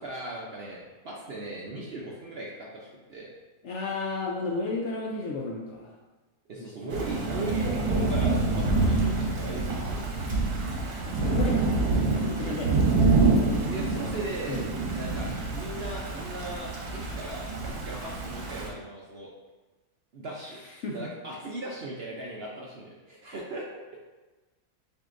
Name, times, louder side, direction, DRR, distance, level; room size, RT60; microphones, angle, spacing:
voice 1, 0.0-3.3 6.5-10.0 13.6-14.6 14.9-17.5 17.7-19.3 20.1-23.8, right 2 dB, 60° right, -3 dB, 0.7 m, -38 dB
voice 2, 3.6-5.9 6.6-6.9 11.0-11.8 12.1-12.9 14.4-14.7 20.6-21.1, left 3 dB, 65° left, -2 dB, 0.7 m, -33 dB
Thunder / Rain, 6.9-18.7, right 3 dB, 85° right, 1.4 m, -26 dB
7.8 x 2.7 x 2.5 m, 1.2 s
omnidirectional pair, 1.6 m